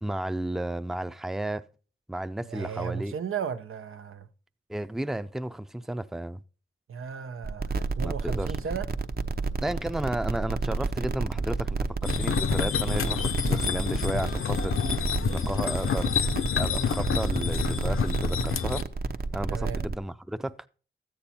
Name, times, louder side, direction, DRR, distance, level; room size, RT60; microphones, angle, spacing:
voice 1, 0.0-1.7 2.1-3.1 4.7-6.4 8.0-8.6 9.6-14.8 15.2-16.1 16.6-18.9 19.3-20.6, right 1 dB, ahead, 0.5 m, -33 dB
voice 2, 2.5-4.3 6.9-8.8 19.5-19.8, right 7 dB, 90° right, 0.9 m, -35 dB
sound 1, 7.4-19.9, right 3 dB, 45° right, 0.8 m, -30 dB
sound 2, 12.0-18.8, left 7 dB, 80° left, 0.8 m, -28 dB
13.5 x 8.8 x 4.3 m
wide cardioid pair, 85°, 21 cm